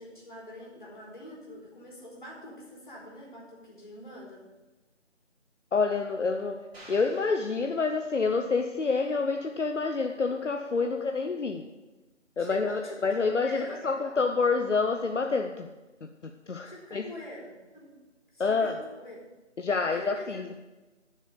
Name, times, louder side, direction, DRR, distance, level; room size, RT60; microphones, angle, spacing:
voice 1, 0.0-4.4 12.4-13.0 13.4-13.9 16.6-18.0 18.3-19.2 19.9-20.6, left 1 dB, 40° left, -4 dB, 3.7 m, -45 dB
voice 2, 5.7-6.6 6.9-11.7 12.4-15.7 16.0-17.1 18.4-18.7 19.6-20.6, left 4 dB, 70° left, 5 dB, 0.8 m, -28 dB
sound 1, 6.7-8.5, right 1 dB, 55° right, 3.5 m, -52 dB
10.0 x 6.9 x 6.7 m, 1.2 s
figure-of-eight pair, 165°, 37 cm